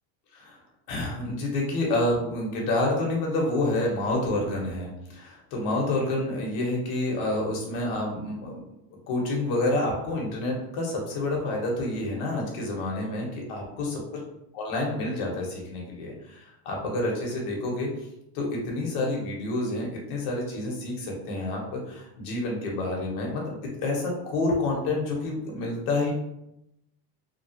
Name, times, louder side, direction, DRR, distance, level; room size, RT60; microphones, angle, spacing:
voice 1, 0.9-8.6 9.1-13.9 14.5-17.9 18.3-26.1, left 2 dB, 70° left, -1 dB, 1.2 m, -28 dB
3.0 x 2.3 x 2.8 m, 0.84 s
supercardioid pair, 120°, 45 cm